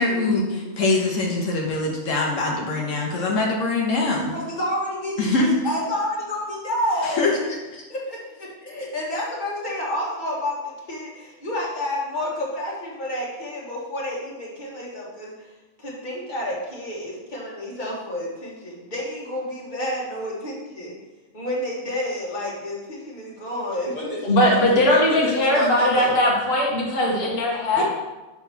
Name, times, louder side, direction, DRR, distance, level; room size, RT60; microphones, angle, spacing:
voice 1, 0.0-4.4 5.2-5.5 7.0-7.4 7.7-7.8, left 2 dB, 80° left, -1 dB, 1.2 m, -23 dB
voice 2, 4.3-7.4 7.9-10.5 10.9-15.3 15.8-20.9 21.3-26.1 27.8-27.9, left 1 dB, 40° left, -4 dB, 1.6 m, -30 dB
voice 3, 24.2-27.8, left 1 dB, 55° left, -3 dB, 1.3 m, -19 dB
5.8 x 3.6 x 5.5 m, 1.1 s
omnidirectional pair, 1.3 m